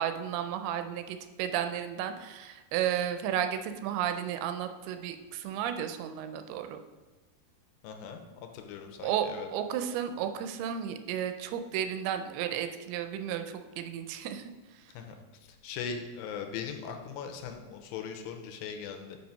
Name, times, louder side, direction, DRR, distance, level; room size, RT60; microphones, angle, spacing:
voice 1, 0.0-6.8 9.0-14.5, right 9 dB, 85° right, 8 dB, 2.5 m, -33 dB
voice 2, 7.8-8.2 8.5-9.5 14.9-15.2 15.6-19.2, left 6 dB, 80° left, 4 dB, 2.4 m, -39 dB
5.9 x 5.7 x 5.5 m, 1.3 s
omnidirectional pair, 4.4 m